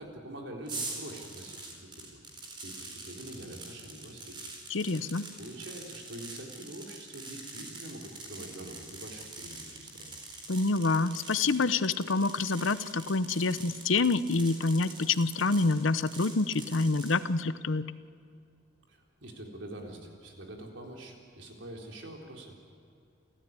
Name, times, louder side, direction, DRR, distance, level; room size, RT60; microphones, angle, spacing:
voice 1, 0.0-2.2 2.6-4.4 5.4-10.1 18.9-22.7, right 1 dB, 75° right, 1 dB, 4.0 m, -45 dB
sound 1, 0.7-17.2, right 2 dB, 25° right, 4.4 m, -44 dB
voice 2, 4.7-5.3 10.5-17.9, left 3 dB, 85° left, 13 dB, 0.8 m, -27 dB
29.5 x 15.0 x 9.7 m, 2.5 s
head